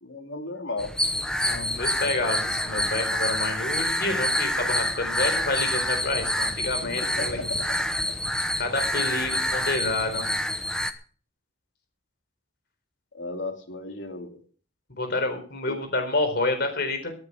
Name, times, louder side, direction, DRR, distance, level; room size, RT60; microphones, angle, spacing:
voice 1, 0.0-0.9 6.8-7.7 8.1-8.2 13.1-14.4 15.7-15.8, left 2 dB, 80° left, 4 dB, 3.0 m, -35 dB
sound 1, 0.8-10.9, left 1 dB, 5° left, 0.9 m, -27 dB
voice 2, 1.4-7.4 8.6-10.3 14.9-17.1, left 2 dB, 60° left, 6 dB, 4.3 m, -28 dB
18.5 x 9.7 x 5.1 m, 0.43 s
head